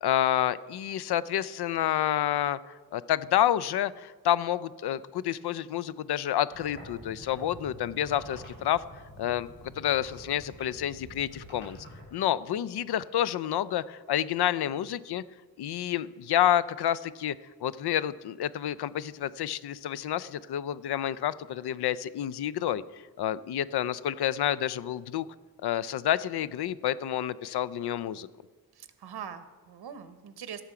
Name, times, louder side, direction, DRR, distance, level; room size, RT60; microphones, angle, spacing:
voice 1, 0.0-2.6 2.9-8.8 9.2-11.8 12.1-15.2 15.6-17.4 17.6-25.3 25.6-28.3, left 11 dB, 90° left, 17 dB, 0.5 m, -29 dB
sound 1, 6.5-12.0, equal, 30° left, 3.9 m, -48 dB
voice 2, 28.8-30.6, right 8 dB, 85° right, 10 dB, 0.9 m, -42 dB
16.0 x 7.0 x 4.9 m, 1.4 s
wide cardioid pair, 170°, 38 cm